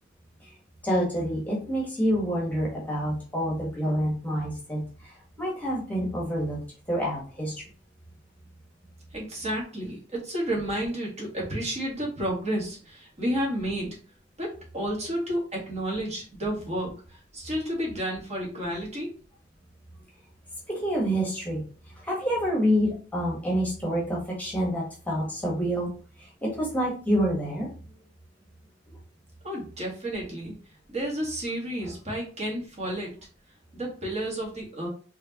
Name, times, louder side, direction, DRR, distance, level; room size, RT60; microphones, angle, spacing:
voice 1, 0.8-6.6 6.9-7.5 20.7-21.6 22.0-25.9 26.2-27.7 31.8-31.9, equal, 10° left, -3 dB, 1.2 m, -27 dB
voice 2, 9.1-14.0 14.4-16.9 17.3-19.1 29.4-30.5 30.9-33.2 33.7-34.9, right 1 dB, 35° right, -3 dB, 1.6 m, -31 dB
4.8 x 3.0 x 2.9 m, 0.39 s
head